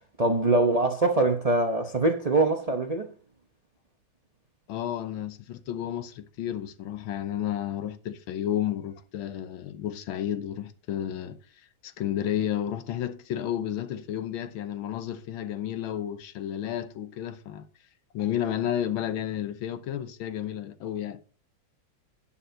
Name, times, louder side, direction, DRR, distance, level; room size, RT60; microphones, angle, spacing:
voice 1, 0.2-3.1, right 2 dB, 70° right, 0.3 m, -23 dB
voice 2, 4.7-17.7 18.1-21.2, left 10 dB, 80° left, 1.6 m, -32 dB
11.0 x 8.5 x 2.7 m
omnidirectional pair, 2.2 m